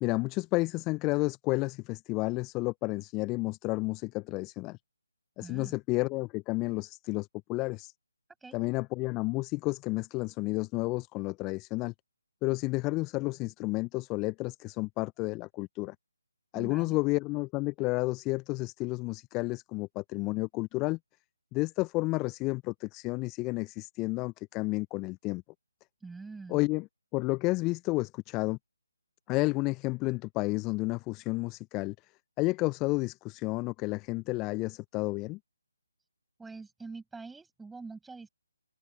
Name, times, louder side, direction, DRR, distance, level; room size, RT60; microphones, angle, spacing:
voice 1, 0.0-4.8 5.4-7.9 8.5-11.9 12.4-15.9 16.5-21.0 21.5-25.4 26.5-26.9 27.1-28.6 29.3-31.9 32.4-35.4, left 23 dB, 15° left, 0.8 m, -31 dB
voice 2, 5.4-5.7 8.4-8.6 16.5-17.0 26.0-26.7 36.4-38.3, right 4 dB, 5° right, 6.7 m, -45 dB
figure-of-eight pair, 145°, 0 cm